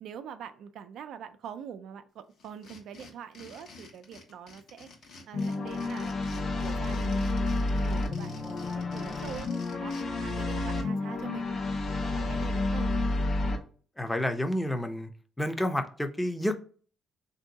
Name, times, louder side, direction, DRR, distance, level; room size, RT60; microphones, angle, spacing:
voice 1, 0.0-4.9 5.3-7.4 7.7-9.5 9.7-11.5 12.0-12.9, right 8 dB, 75° right, 0.4 m, -44 dB
sound 1, 2.4-10.0, left 4 dB, 75° left, 1.1 m, -50 dB
sound 2, 5.3-13.6, left 2 dB, 55° left, 0.8 m, -30 dB
voice 2, 14.0-15.1 15.4-16.6, left 1 dB, 10° left, 0.6 m, -29 dB
3.5 x 2.7 x 4.0 m
cardioid pair, 90°, 0 cm